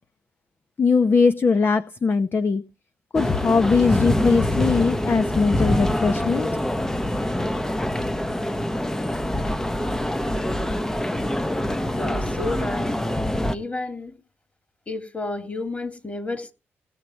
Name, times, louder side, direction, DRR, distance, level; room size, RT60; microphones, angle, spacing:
voice 1, 0.8-2.6 3.1-6.5, left 4 dB, 45° left, 0.8 m, -20 dB
sound 1, 3.1-13.5, left 1 dB, 10° left, 0.8 m, -25 dB
voice 2, 12.0-12.9 13.5-14.2 14.9-16.5, left 2 dB, 30° left, 2.4 m, -31 dB
18.5 x 7.0 x 4.3 m
supercardioid pair, 55°, 5 cm